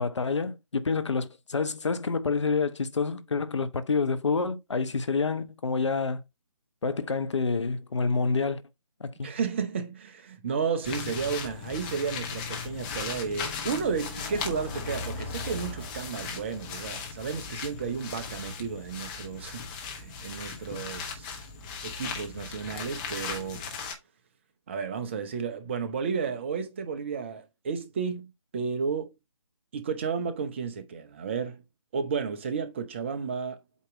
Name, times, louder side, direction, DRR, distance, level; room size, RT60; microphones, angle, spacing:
voice 1, 0.0-6.2 6.8-8.6 9.0-9.3, left 4 dB, 60° left, 0.9 m, -28 dB
voice 2, 9.2-21.4 21.8-23.6 24.7-29.1 29.7-31.6 31.9-33.6, right 6 dB, 20° right, 0.6 m, -32 dB
sound 1, 10.8-23.9, left 5 dB, 15° left, 0.8 m, -37 dB
8.2 x 2.9 x 4.6 m
figure-of-eight pair, 150°, 17 cm